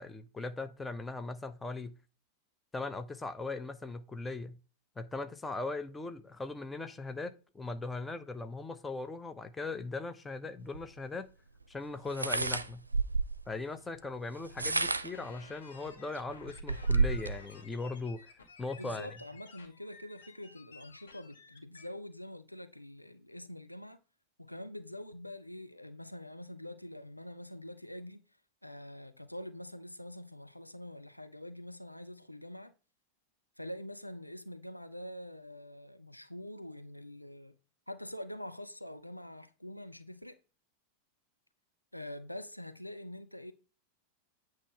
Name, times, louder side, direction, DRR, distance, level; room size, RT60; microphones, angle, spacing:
voice 1, 0.0-1.9 2.7-4.6 5.0-11.3 11.7-12.8 13.5-18.3 18.6-19.1, left 3 dB, 10° left, 0.8 m, -39 dB
sound 1, 10.7-10.8 12.1-13.4 14.4-15.3 15.9-16.0 16.3-17.4, right 4 dB, 80° right, 0.5 m, -30 dB
sound 2, 15.1-21.9, left 4 dB, 70° left, 1.3 m, -55 dB
voice 2, 18.8-24.0 24.4-28.2 28.6-32.7 33.6-37.6 37.9-40.4 41.9-43.5, left 1 dB, 90° left, 0.6 m, -45 dB
8.6 x 3.2 x 5.9 m
figure-of-eight pair, 90°, 0 cm